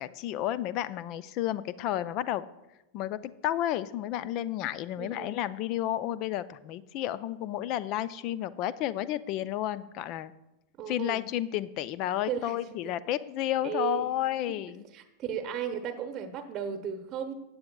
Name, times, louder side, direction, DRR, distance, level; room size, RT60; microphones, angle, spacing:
voice 1, 0.0-2.5 2.9-10.3 10.9-14.9, left 12 dB, 40° left, 17 dB, 0.4 m, -31 dB
voice 2, 5.0-5.4 10.8-11.2 12.3-12.9 13.6-14.1 14.5-14.6 14.9-17.3, right 8 dB, 30° right, 6 dB, 0.9 m, -35 dB
16.5 x 9.3 x 2.3 m, 0.95 s
figure-of-eight pair, 90°, 0 cm